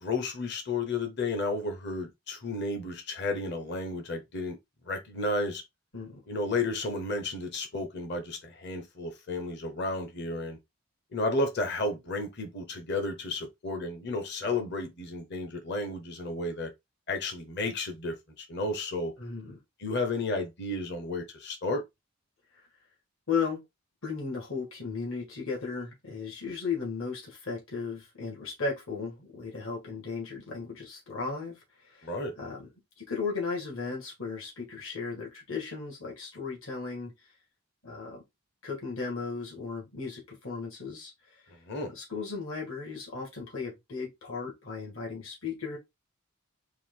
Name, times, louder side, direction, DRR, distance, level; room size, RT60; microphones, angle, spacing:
voice 1, 0.0-4.6 4.9-5.6 6.3-10.6 11.1-16.7 17.1-19.1 19.8-21.8 32.0-32.3 41.7-41.9, left 2 dB, 50° left, 0.9 m, -32 dB
voice 2, 19.2-19.6 23.3-23.6 24.0-32.7 33.0-37.1 37.8-38.2 38.6-41.4 41.9-45.8, left 5 dB, 65° left, 1.8 m, -36 dB
4.6 x 2.4 x 3.8 m
head